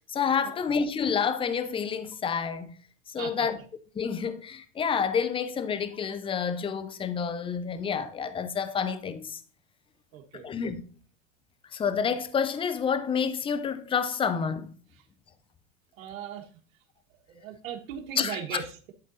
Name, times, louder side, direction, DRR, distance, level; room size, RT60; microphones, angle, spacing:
voice 1, 0.1-2.7 3.1-3.6 3.9-9.4 10.4-10.8 11.7-14.7 18.2-18.6, left 6 dB, 15° left, 0.6 m, -29 dB
voice 2, 3.2-3.5 10.1-10.5 16.0-16.5 17.3-18.9, right 8 dB, 85° right, 1.5 m, -38 dB
11.5 x 3.8 x 4.0 m
supercardioid pair, 130°, 39 cm